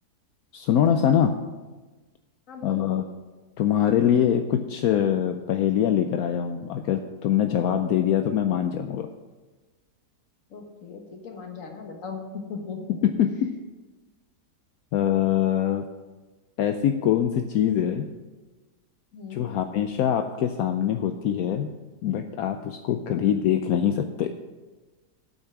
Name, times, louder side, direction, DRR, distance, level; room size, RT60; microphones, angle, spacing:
voice 1, 0.5-1.4 2.6-3.0 3.6-9.1 13.0-13.5 14.9-15.9 16.6-18.1 19.3-21.7 22.0-24.3, left 9 dB, 75° left, 7 dB, 1.0 m, -23 dB
voice 2, 2.5-2.8 10.5-13.0 19.1-19.5 22.9-23.2, left 4 dB, 55° left, 3 dB, 1.7 m, -38 dB
8.6 x 8.1 x 5.9 m, 1.2 s
omnidirectional pair, 1.7 m